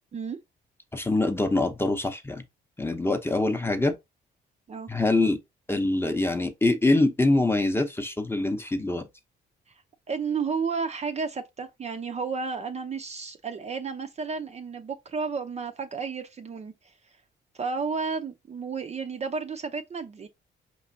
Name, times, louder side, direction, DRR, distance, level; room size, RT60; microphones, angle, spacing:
voice 1, 0.9-2.4 2.8-4.0 4.9-5.4 5.7-9.0, left 2 dB, 10° left, 0.7 m, -24 dB
voice 2, 10.1-16.7 17.6-20.3, right 5 dB, 35° right, 0.5 m, -32 dB
5.1 x 3.0 x 2.6 m
cardioid pair, 90°, 20 cm